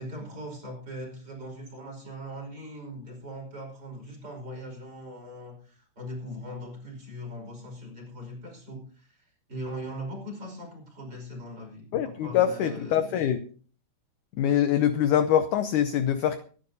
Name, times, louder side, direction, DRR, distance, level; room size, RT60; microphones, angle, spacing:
voice 1, 0.0-13.2, equal, 25° right, 0 dB, 5.7 m, -40 dB
voice 2, 11.9-13.4 14.4-16.4, left 10 dB, 75° left, 10 dB, 1.9 m, -24 dB
24.5 x 11.5 x 2.8 m, 0.42 s
omnidirectional pair, 4.4 m